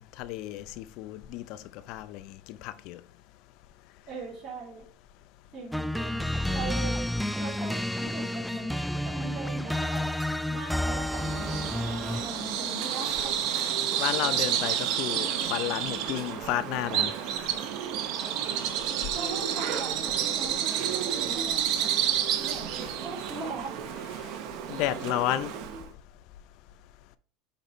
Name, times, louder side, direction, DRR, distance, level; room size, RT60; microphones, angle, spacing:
voice 1, 0.2-1.6 1.9-3.0 14.0-17.2 24.7-25.5, left 14 dB, 60° left, 0.5 m, -32 dB
voice 2, 4.1-4.9 5.5-10.1 10.5-13.3 19.1-23.8, right 3 dB, 35° right, 3.0 m, -40 dB
sound 1, 5.7-12.4, left 1 dB, ahead, 0.3 m, -30 dB
Bird vocalization bird call bird song, 11.1-25.9, right 9 dB, 60° right, 0.9 m, -30 dB
8.1 x 4.2 x 3.1 m
hypercardioid pair, 100°, 0 cm